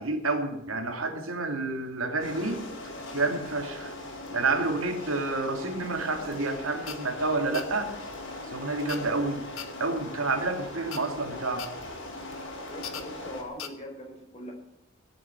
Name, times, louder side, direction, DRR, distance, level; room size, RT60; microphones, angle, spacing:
voice 1, 0.0-2.6 3.1-3.9 4.3-7.9 8.5-9.4 9.8-11.7, right 3 dB, 85° right, 4 dB, 2.7 m, -29 dB
sound 1, 2.2-13.4, left 2 dB, 65° left, 4.6 m, -40 dB
sound 2, 5.9-13.7, left 9 dB, 80° left, 1.4 m, -44 dB
voice 2, 12.7-14.5, equal, 30° left, 1 dB, 4.5 m, -41 dB
17.5 x 7.2 x 8.9 m, 0.83 s
head